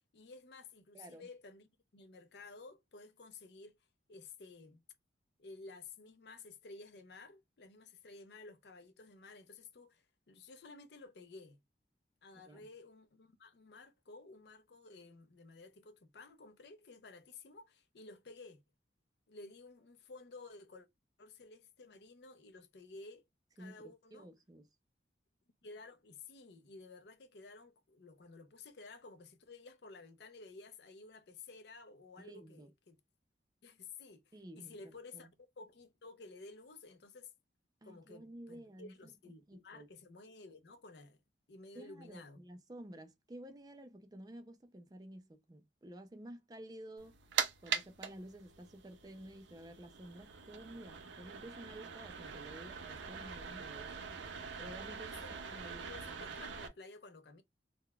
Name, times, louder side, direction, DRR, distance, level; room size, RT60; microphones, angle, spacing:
voice 1, 0.1-3.8 4.1-4.8 5.4-11.6 12.2-18.6 19.3-20.9 21.2-23.2 23.6-24.3 25.6-33.0 33.6-35.3 35.6-37.3 37.8-41.2 41.5-42.4 55.0-55.4 55.7-57.4, left 3 dB, 65° left, 0.5 m, -54 dB
voice 2, 0.9-1.3 12.5-12.7 23.6-23.8 24.1-24.7 32.2-32.7 34.3-35.3 37.8-39.1 39.5-39.9 41.7-47.1 47.6-54.1 54.6-55.9, right 1 dB, 20° right, 0.4 m, -52 dB
sound 1, 47.0-56.7, right 6 dB, 80° right, 0.4 m, -43 dB
3.8 x 2.2 x 2.2 m
head